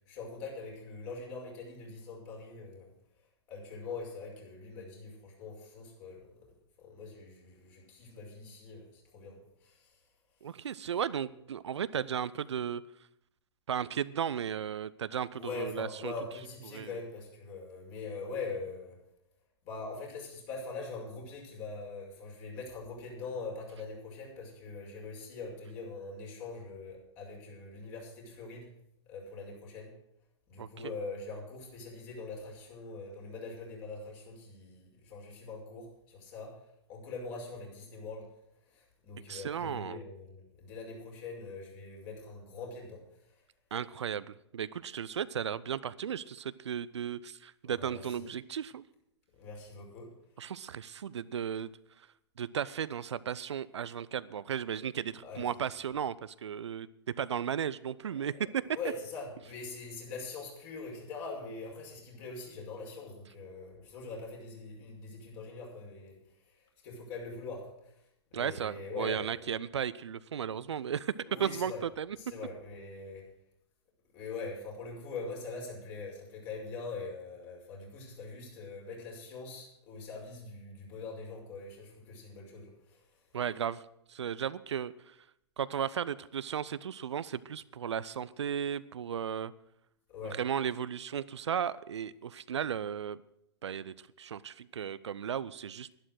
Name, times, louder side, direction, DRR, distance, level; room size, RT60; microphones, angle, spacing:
voice 1, 0.1-2.9 3.5-6.5 6.8-9.9 15.3-19.0 19.6-28.7 29.1-29.9 30.5-36.5 36.9-38.3 38.7-43.0 47.6-48.3 49.4-50.1 55.2-55.5 58.7-66.2 66.8-67.9 68.3-69.4 71.2-71.8 72.2-73.3 74.1-83.0 90.1-90.4, left 3 dB, 40° left, -1 dB, 5.6 m, -43 dB
voice 2, 10.4-12.8 13.7-16.1 16.7-16.9 30.6-30.9 39.3-40.0 43.7-48.8 50.4-51.7 52.4-56.9 57.2-58.6 68.3-71.1 71.4-72.2 83.3-83.8 84.1-85.2 85.6-89.5 90.4-93.2 93.6-95.9, right 8 dB, 75° right, 17 dB, 0.5 m, -35 dB
11.5 x 11.0 x 6.3 m, 0.78 s
hypercardioid pair, 115°, 15 cm